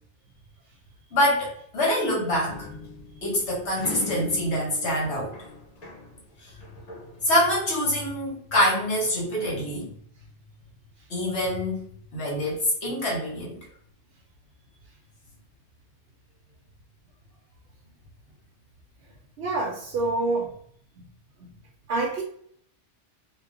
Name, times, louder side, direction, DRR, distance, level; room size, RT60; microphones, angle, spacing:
voice 1, 1.1-2.7 3.2-5.3 6.4-6.5 7.2-9.9 11.1-13.6, left 1 dB, 70° left, -4 dB, 1.4 m, -25 dB
sound 1, 2.5-6.2 6.5-7.7, left 4 dB, 45° left, 0.6 m, -39 dB
voice 2, 19.4-20.5 21.0-21.1 21.4-21.5 21.9-22.2, right 2 dB, 70° right, -2 dB, 0.9 m, -27 dB
2.9 x 2.2 x 3.5 m, 0.64 s
omnidirectional pair, 1.2 m